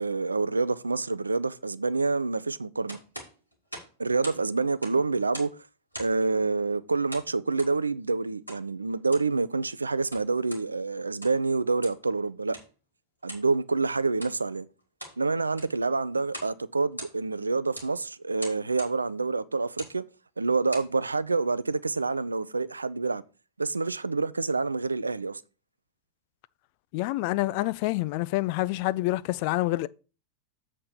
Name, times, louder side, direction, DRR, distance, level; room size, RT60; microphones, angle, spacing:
voice 1, 0.0-3.0 4.0-5.5 6.0-12.6 13.2-14.7 15.2-20.0 20.4-23.2 23.6-25.4, right 3 dB, 80° right, 0.4 m, -27 dB
sound 1, 2.9-4.4 4.7-5.6 5.9-6.3 7.1-7.8 8.5-8.6 9.0-9.3 9.9-10.7 11.1-11.5 11.8-12.1 12.5-12.7 13.3-13.5 14.1-14.4 14.8-15.2 15.5-15.8 16.3-16.6 16.8-17.4 17.7-17.9 18.4-19.0 19.7-20.0 20.5-20.9, right 1 dB, 90° left, 2.1 m, -42 dB
voice 2, 26.9-29.9, left 18 dB, 45° left, 0.4 m, -27 dB
7.5 x 4.2 x 6.7 m
figure-of-eight pair, 90°, 0 cm